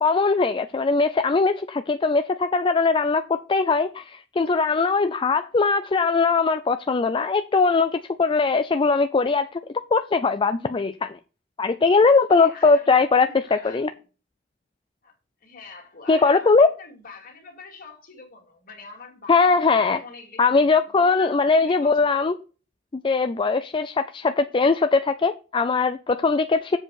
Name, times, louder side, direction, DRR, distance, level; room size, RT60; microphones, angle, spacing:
voice 1, 0.0-9.6 9.9-11.2 11.6-13.9 16.1-16.7 19.3-20.0 20.4-22.3 22.9-26.8, left 4 dB, 25° left, 0.4 m, -20 dB
voice 2, 12.3-13.9 15.0-15.1 15.4-22.4, left 3 dB, 50° left, 2.6 m, -45 dB
7.6 x 4.7 x 6.4 m
head